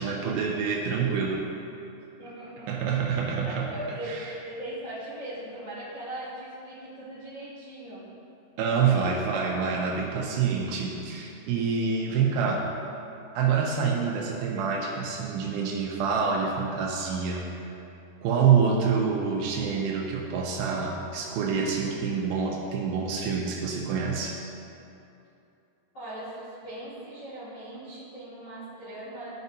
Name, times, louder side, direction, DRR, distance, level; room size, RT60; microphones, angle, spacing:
voice 1, 0.0-1.4 2.7-4.3 8.6-12.7 13.4-17.5 18.2-24.4, right 6 dB, 85° right, -1 dB, 2.1 m, -27 dB
voice 2, 2.2-2.7 3.4-4.1 4.4-8.1 8.5-8.9 11.8-11.9 25.9-29.3, right 1 dB, 55° left, -9 dB, 1.1 m, -39 dB
13.0 x 5.1 x 2.7 m, 2.7 s
omnidirectional pair, 5.0 m